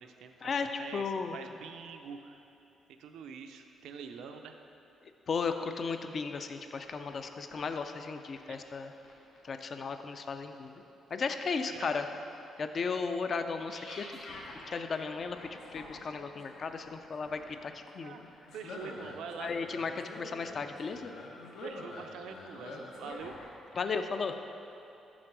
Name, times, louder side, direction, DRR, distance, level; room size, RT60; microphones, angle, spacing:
voice 1, 0.0-2.4 3.0-4.6 8.5-8.6 11.6-12.2 18.0-18.2 18.5-19.5 21.6-23.3, right 6 dB, 85° right, 6 dB, 0.5 m, -45 dB
voice 2, 0.9-1.4 5.3-8.9 9.4-10.7 11.1-12.1 12.6-14.1 14.5-18.2 19.4-21.1 23.7-24.3, left 5 dB, 40° left, 8 dB, 0.4 m, -35 dB
sound 1, 6.5-6.6 6.8-8.6 9.0-9.4 9.8-9.9 10.5-10.7 11.3-11.6 12.3-12.4 13.6-23.5 23.8-24.1, left 2 dB, 90° left, 1.0 m, -47 dB
6.2 x 5.9 x 4.6 m, 2.9 s
cardioid pair, 135°, 0 cm